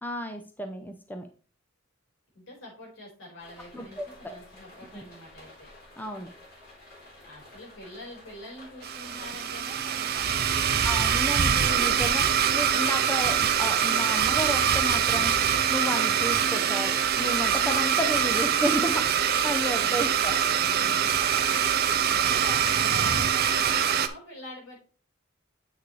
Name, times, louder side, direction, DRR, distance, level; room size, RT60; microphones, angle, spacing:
voice 1, 0.0-1.3 3.7-4.3 4.9-5.0 6.0-6.3 10.8-15.3 15.7-20.3, equal, 10° left, 6 dB, 0.7 m, -32 dB
voice 2, 2.3-5.7 7.2-11.6 19.7-20.3 22.2-24.8, left 1 dB, 75° left, -2 dB, 4.7 m, -44 dB
sound 1, 3.4-10.5, left 1 dB, 55° left, 3.6 m, -51 dB
Domestic sounds home sounds, 8.8-24.1, right 8 dB, 50° right, 0.7 m, -24 dB
8.2 x 6.4 x 3.2 m, 0.36 s
head